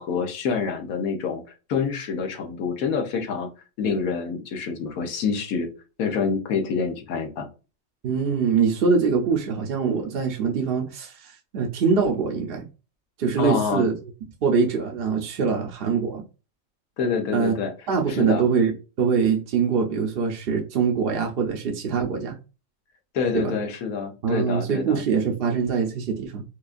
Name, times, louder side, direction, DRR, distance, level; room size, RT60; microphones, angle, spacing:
voice 1, 0.0-1.4 1.7-3.5 3.8-5.7 6.0-7.5 13.4-13.9 17.0-17.7 18.1-18.5 23.1-25.0, left 5 dB, 90° left, 1.2 m, -27 dB
voice 2, 8.0-12.7 13.2-13.9 14.4-16.2 17.3-17.6 17.9-22.4 23.3-23.5 24.2-26.4, right 5 dB, 55° right, 0.7 m, -23 dB
4.7 x 2.3 x 2.5 m
omnidirectional pair, 1.4 m